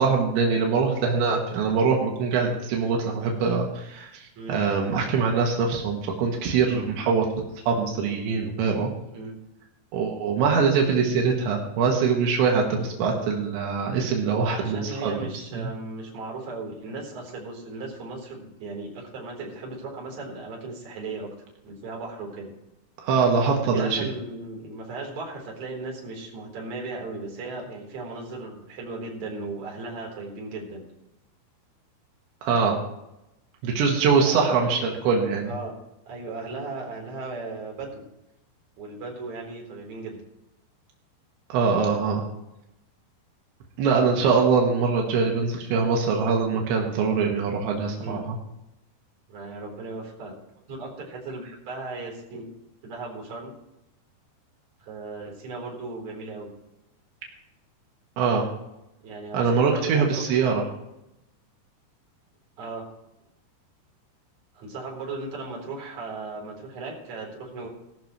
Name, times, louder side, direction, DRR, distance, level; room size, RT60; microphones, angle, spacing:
voice 1, 0.0-7.3 7.7-8.9 9.9-15.7 23.0-24.0 32.4-32.8 33.6-35.5 41.5-42.2 43.8-48.4 58.2-58.4 59.3-60.6, right 5 dB, 85° right, 0 dB, 4.0 m, -23 dB
voice 2, 14.4-21.3 21.6-22.5 23.7-30.8 34.2-34.7 35.4-35.7 36.1-38.0 38.8-40.2 43.9-44.3 48.0-48.2 49.3-50.3 50.7-52.4 52.8-53.5 54.8-56.5 59.0-60.8 62.6-62.8 64.5-67.7, right 3 dB, 45° right, -2 dB, 5.0 m, -37 dB
18.0 x 13.0 x 3.2 m, 0.88 s
omnidirectional pair, 5.1 m